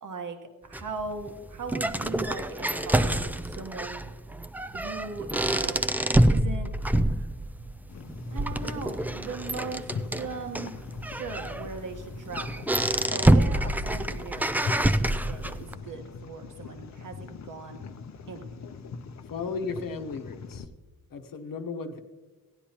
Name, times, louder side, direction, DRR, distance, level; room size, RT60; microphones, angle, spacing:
voice 1, 0.0-0.4 0.6-4.0 4.7-5.9 6.3-6.7 8.3-10.7 11.0-12.6 13.1-17.8 18.3-18.5, right 4 dB, 60° right, 5 dB, 1.3 m, -39 dB
sound 1, 0.7-15.7, right 1 dB, 5° right, 0.3 m, -27 dB
sound 2, 7.9-20.7, left 5 dB, 50° left, 0.7 m, -41 dB
voice 2, 19.3-20.7 21.1-22.0, left 4 dB, 65° left, 5 dB, 1.0 m, -35 dB
17.0 x 10.0 x 2.9 m, 1.3 s
cardioid pair, 105°, 36 cm